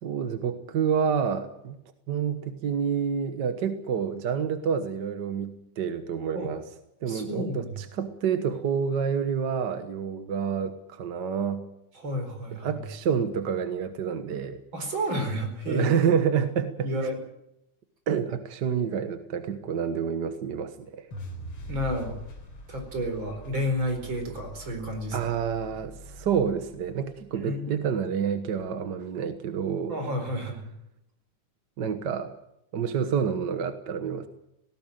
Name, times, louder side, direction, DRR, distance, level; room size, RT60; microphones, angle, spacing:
voice 1, 0.0-1.7 2.1-6.6 7.0-11.7 12.6-14.6 15.7-17.0 18.1-21.1 25.1-30.0 31.8-32.3 32.7-34.3, right 7 dB, 55° right, 9 dB, 1.3 m, -28 dB
voice 2, 7.1-7.8 12.0-12.8 14.7-15.9 16.8-17.2 21.7-22.2 22.7-25.3 27.3-27.7 29.9-30.6, equal, 40° right, 5 dB, 5.2 m, -31 dB
sound 1, 21.1-27.3, equal, 45° left, 5.0 m, -43 dB
19.0 x 17.5 x 9.1 m, 0.81 s
omnidirectional pair, 3.5 m